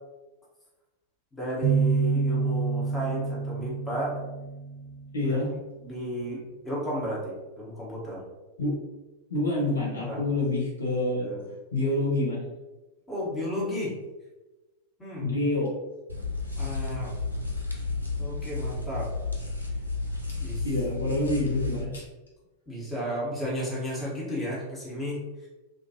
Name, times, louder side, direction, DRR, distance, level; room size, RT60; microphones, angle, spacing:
voice 1, 1.3-4.2 5.2-5.4 5.8-8.2 10.1-10.3 11.2-11.5 13.1-13.9 15.0-15.3 16.6-17.1 18.2-19.1 20.4-20.7 22.7-25.5, equal, 10° left, -6 dB, 1.1 m, -33 dB
sound 1, 1.6-5.3, right 5 dB, 30° right, 0.8 m, -28 dB
voice 2, 5.1-5.6 8.6-8.8 9.3-11.3 11.7-12.4 15.2-15.7 20.6-22.0, left 2 dB, 70° left, -5 dB, 0.8 m, -27 dB
sound 2, 16.1-21.8, left 3 dB, 90° right, 0.5 m, -32 dB
2.5 x 2.4 x 2.8 m, 1.1 s
figure-of-eight pair, 90°, 0 cm